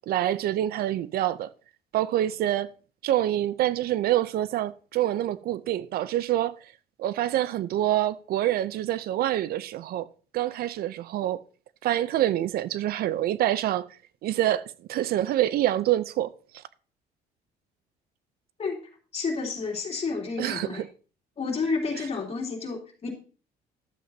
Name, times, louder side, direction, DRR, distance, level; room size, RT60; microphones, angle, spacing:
voice 1, 0.1-1.5 1.9-2.7 3.0-6.6 7.0-10.1 10.3-11.4 11.8-13.9 14.2-16.3 20.4-20.9, right 13 dB, 65° right, 0.5 m, -26 dB
voice 2, 19.1-20.8 21.4-23.1, left 4 dB, 35° left, 3.0 m, -30 dB
12.0 x 7.7 x 2.7 m
cardioid pair, 110°, 17 cm